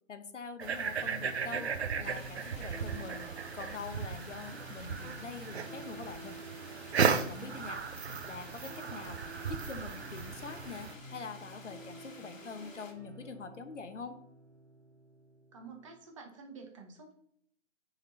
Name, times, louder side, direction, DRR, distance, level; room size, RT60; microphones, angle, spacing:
voice 1, 0.1-6.4 7.1-7.8 8.3-9.2 9.5-14.2, left 5 dB, 65° left, 8 dB, 1.1 m, -44 dB
sound 1, 0.6-10.9, right 6 dB, 55° right, 0.8 m, -36 dB
sound 2, 1.0-16.0, right 1 dB, 5° left, 0.8 m, -51 dB
sound 3, 2.0-12.9, left 3 dB, 90° left, 1.7 m, -53 dB
voice 2, 15.5-17.1, right 5 dB, 25° right, 3 dB, 1.0 m, -49 dB
9.0 x 4.4 x 4.0 m, 0.68 s
figure-of-eight pair, 155°, 38 cm